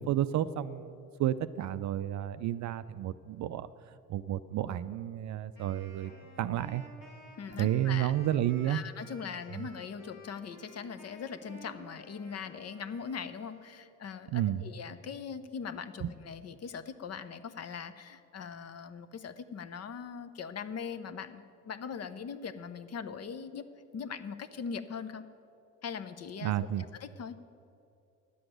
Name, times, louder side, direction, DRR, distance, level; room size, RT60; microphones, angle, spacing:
voice 1, 0.0-6.1 6.4-6.8 7.6-8.8 9.6-9.7 14.3-14.7 16.0-16.1 26.4-26.8, right 12 dB, 45° right, 13 dB, 0.5 m, -31 dB
Wind instrument woodwind instrument, 5.5-13.9, left 1 dB, 85° left, 2.4 m, -53 dB
voice 2, 7.4-8.1 8.7-23.7 23.9-25.2 25.8-26.5 27.0-27.3, left 6 dB, 35° left, 12 dB, 0.8 m, -41 dB
10.0 x 7.8 x 9.1 m, 2.6 s
hypercardioid pair, 55°, 43 cm